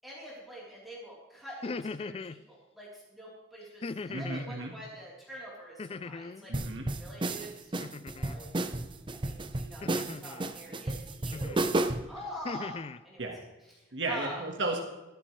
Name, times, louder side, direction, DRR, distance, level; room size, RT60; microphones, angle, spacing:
voice 1, 0.0-6.5 7.0-7.7 8.1-8.5 9.1-11.7 12.1-13.3 13.7-14.4, equal, ahead, -8 dB, 3.7 m, -45 dB
sound 1, 1.5-2.4 3.8-4.5 5.8-6.5 7.8-8.4 9.8-10.5 11.3-11.7 12.2-13.0, left 4 dB, 30° left, 0.4 m, -39 dB
voice 2, 4.1-4.7 6.5-6.9 13.2-13.4 13.9-14.8, right 2 dB, 85° right, 1 dB, 1.6 m, -34 dB
sound 2, 6.5-12.1, right 2 dB, 25° right, 0.7 m, -32 dB
17.5 x 13.0 x 3.3 m, 1.1 s
head